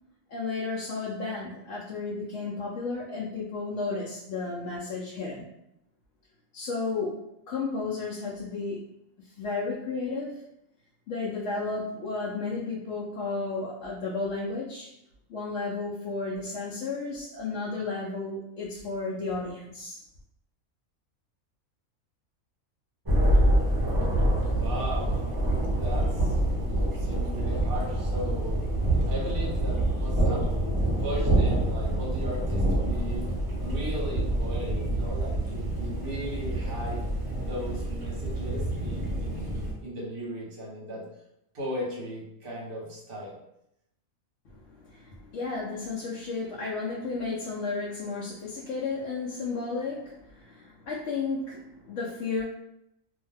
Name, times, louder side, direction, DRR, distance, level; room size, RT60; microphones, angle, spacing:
voice 1, 0.3-5.5 6.5-8.8 9.4-10.4 11.1-14.9 15.3-20.0 44.5-52.4, left 3 dB, 65° left, -5 dB, 0.8 m, -33 dB
Thunder, 23.0-39.7, right 1 dB, 25° right, 0.5 m, -26 dB
voice 2, 24.5-25.2 25.6-26.4 26.9-28.6 29.0-30.5 31.0-37.0 37.4-41.0 41.5-43.4, equal, 45° right, -4 dB, 1.0 m, -37 dB
2.6 x 2.1 x 3.3 m, 0.80 s
omnidirectional pair, 1.4 m